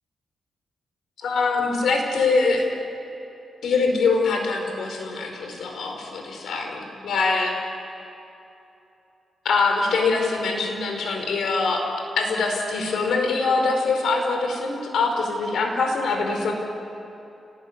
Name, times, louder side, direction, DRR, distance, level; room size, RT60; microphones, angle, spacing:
voice 1, 1.2-2.6 3.6-7.5 9.4-11.8 12.2-16.5, left 4 dB, 80° left, 3 dB, 5.0 m, -23 dB
29.0 x 20.0 x 9.8 m, 2.8 s
cardioid pair, 85°, 0 cm